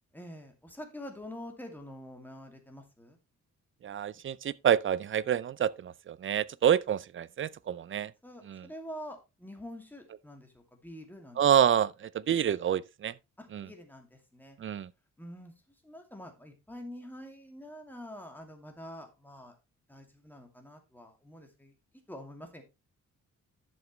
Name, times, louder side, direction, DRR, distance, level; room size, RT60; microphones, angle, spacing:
voice 1, 0.1-3.2 8.2-11.4 13.4-14.6 15.2-15.5 15.8-19.6 19.9-21.7 22.1-22.6, equal, 5° left, 2.4 m, -46 dB
voice 2, 3.8-8.1 8.5-8.6 11.4-13.1 13.5-13.6 14.6-14.9, right 9 dB, 40° right, 0.5 m, -27 dB
11.0 x 7.2 x 3.2 m
cardioid pair, 130°, 31 cm